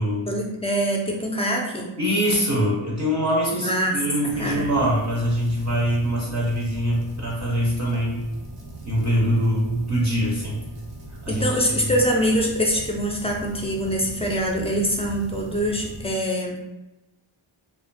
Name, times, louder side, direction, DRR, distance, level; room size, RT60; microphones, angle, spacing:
voice 1, 0.3-1.9 3.5-4.0 4.4-4.7 11.3-16.6, equal, 15° left, -1 dB, 0.4 m, -24 dB
voice 2, 2.0-8.3 8.8-10.6 11.2-11.5, equal, 35° right, -5 dB, 0.6 m, -23 dB
sound 1, 4.3-16.1, right 1 dB, 85° right, 0.7 m, -39 dB
2.4 x 2.2 x 2.5 m, 1.0 s
wide cardioid pair, 40°, 50 cm